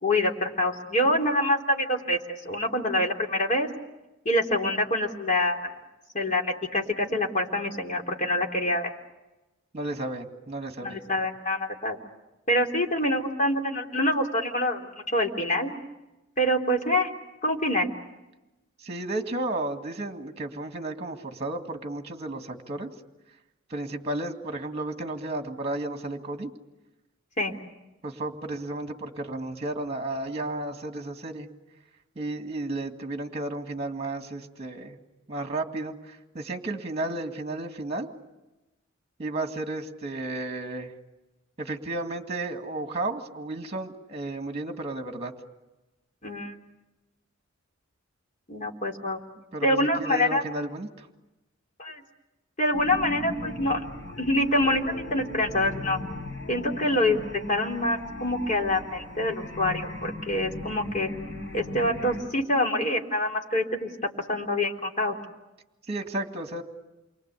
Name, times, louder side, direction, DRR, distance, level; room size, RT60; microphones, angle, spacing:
voice 1, 0.0-3.7 4.3-5.6 6.1-8.9 10.8-12.0 12.5-15.7 16.4-17.1 17.4-17.9 27.4-27.5 46.2-46.6 48.5-49.2 49.6-50.4 51.8-52.0 52.6-53.8 54.2-56.0 56.5-57.2 57.5-61.1 61.5-65.2, left 1 dB, 40° left, 2 dB, 3.6 m, -26 dB
voice 2, 9.7-11.0 18.8-22.9 23.7-26.5 28.0-31.5 32.2-35.0 35.3-38.1 39.2-40.9 41.6-45.3 49.5-51.1 65.9-66.6, right 2 dB, 30° right, 5 dB, 2.1 m, -33 dB
sound 1, 52.7-62.2, left 2 dB, 65° left, 6.4 m, -38 dB
29.0 x 24.0 x 8.3 m, 1.0 s
head